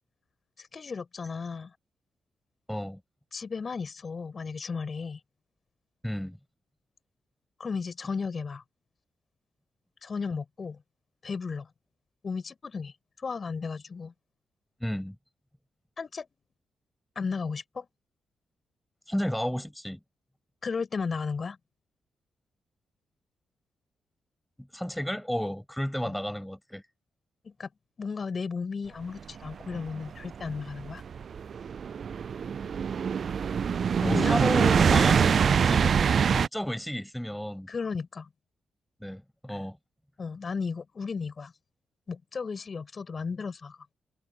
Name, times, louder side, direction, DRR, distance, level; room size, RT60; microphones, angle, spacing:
voice 1, 0.6-1.7 3.3-5.2 7.6-8.6 10.0-10.8 11.2-11.7 12.2-12.9 13.2-14.1 16.0-16.3 17.1-17.9 20.6-21.6 26.0-26.1 27.4-27.7 28.0-31.0 34.0-34.4 37.7-38.3 40.2-41.5 42.1-43.8, left 5 dB, 50° left, 6.7 m, -34 dB
voice 2, 2.7-3.0 6.0-6.4 14.8-15.2 19.1-20.0 24.6-26.8 34.0-36.0 36.3-37.7 39.0-39.8, equal, 5° left, 5.6 m, -32 dB
sound 1, 29.4-36.5, right 7 dB, 60° right, 0.4 m, -24 dB
hypercardioid pair, 40°, 0 cm